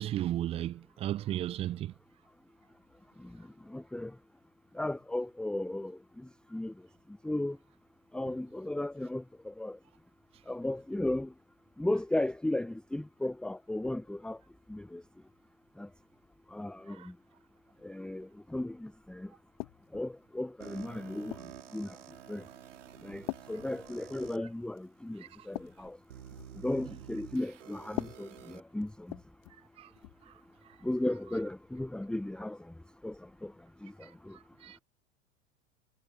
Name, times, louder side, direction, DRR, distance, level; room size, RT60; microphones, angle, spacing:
voice 1, 0.0-1.9 17.0-17.1 29.8-29.9 34.6-34.8, right 13 dB, 15° right, 0.4 m, -34 dB
voice 2, 3.2-4.2 4.7-6.7 7.2-7.6 8.1-9.8 10.5-11.3 11.8-14.4 14.7-15.0 15.8-15.9 16.5-17.1 17.8-19.3 19.9-21.4 21.7-22.0 22.3-22.5 23.0-26.0 26.5-29.2 30.8-32.7 33.0-33.5 33.8-34.4, left 1 dB, ahead, 1.0 m, -35 dB
sound 1, 19.6-20.1 20.8-21.6 22.3-22.5 23.3-24.5 24.8-24.9 25.3-26.6 27.8-29.7 30.0-30.2 31.3-31.5, left 25 dB, 50° left, 2.2 m, -43 dB
sound 2, 20.6-24.4 25.1-25.2 26.1-28.6, right 10 dB, 70° right, 4.3 m, -50 dB
figure-of-eight pair, 90°, 38 cm